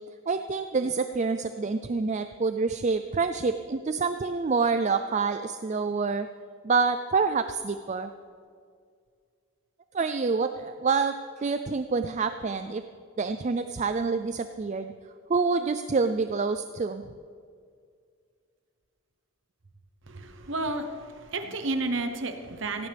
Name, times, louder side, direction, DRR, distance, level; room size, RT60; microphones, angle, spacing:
voice 1, 0.3-6.3 6.6-8.1 9.9-12.8 13.2-14.9 15.3-17.0, right 4 dB, 35° right, 9 dB, 0.4 m, -27 dB
voice 2, 20.0-22.9, right 2 dB, 60° right, 7 dB, 0.9 m, -31 dB
17.5 x 16.0 x 3.5 m, 2.2 s
head